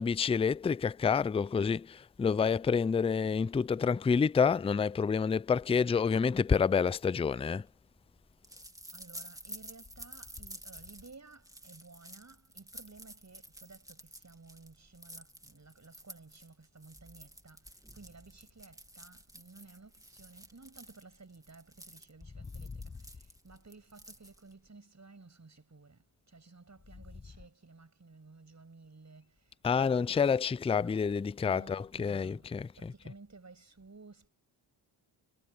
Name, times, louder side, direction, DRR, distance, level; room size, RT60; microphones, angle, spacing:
voice 1, 0.0-7.7 29.6-32.9, left 6 dB, 15° left, 0.3 m, -28 dB
sound 1, 7.2-24.7, right 1 dB, 5° right, 2.3 m, -52 dB
voice 2, 8.4-31.1 31.5-34.3, right 3 dB, 35° right, 7.1 m, -55 dB
cardioid pair, 65°, 49 cm